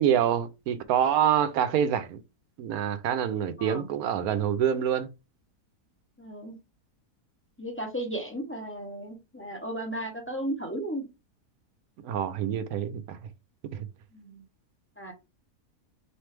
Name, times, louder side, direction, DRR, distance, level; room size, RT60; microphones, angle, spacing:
voice 1, 0.0-2.2 2.6-5.1 12.0-13.2 13.7-13.8, right 9 dB, 75° right, 1.0 m, -26 dB
voice 2, 6.2-6.6 7.6-11.0 14.1-14.4 15.0-15.1, right 1 dB, 15° left, 0.4 m, -35 dB
4.5 x 3.1 x 3.3 m
omnidirectional pair, 1.7 m